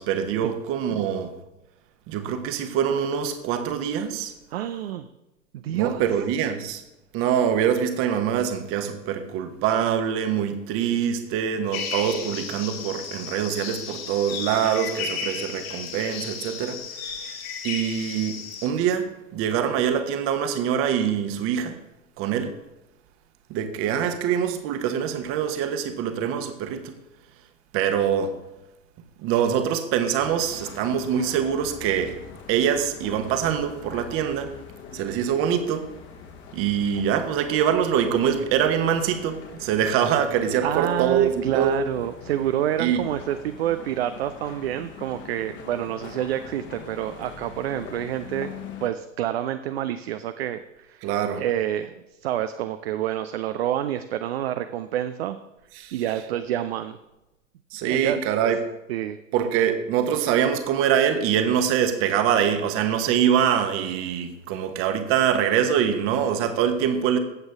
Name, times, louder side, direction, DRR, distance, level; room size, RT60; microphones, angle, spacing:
voice 1, 0.0-1.3 2.1-4.3 5.7-6.8 7.1-17.2 17.6-21.8 22.2-22.5 23.5-26.9 27.7-28.4 29.2-32.2 32.5-34.5 34.9-35.9 36.5-41.8 42.8-43.0 51.0-51.4 55.7-56.0 57.7-58.6 59.3-67.2, right 8 dB, 35° right, 8 dB, 1.3 m, -24 dB
voice 2, 4.5-5.1 5.5-6.0 40.6-51.1 51.4-51.9 52.2-55.4 55.9-57.0 57.9-58.2 58.9-59.2, right 11 dB, 50° right, 10 dB, 0.6 m, -28 dB
sound 1, 11.7-18.7, left 6 dB, 50° left, 2.3 m, -34 dB
sound 2, 30.2-48.9, left 7 dB, 30° left, 1.4 m, -43 dB
15.0 x 8.0 x 3.6 m, 0.97 s
figure-of-eight pair, 95°, 40 cm